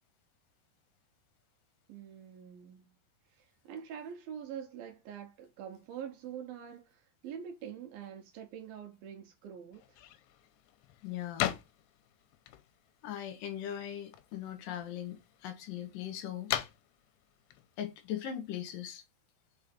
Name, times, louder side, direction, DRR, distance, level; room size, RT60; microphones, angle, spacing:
voice 1, 1.9-2.9 3.3-10.0, right 8 dB, 70° right, 2.5 m, -45 dB
sound 1, 9.7-18.9, left 12 dB, 85° left, 2.7 m, -42 dB
voice 2, 11.0-11.5 13.0-16.5 17.8-19.0, left 10 dB, 70° left, 2.3 m, -39 dB
5.5 x 4.8 x 4.3 m
omnidirectional pair, 4.7 m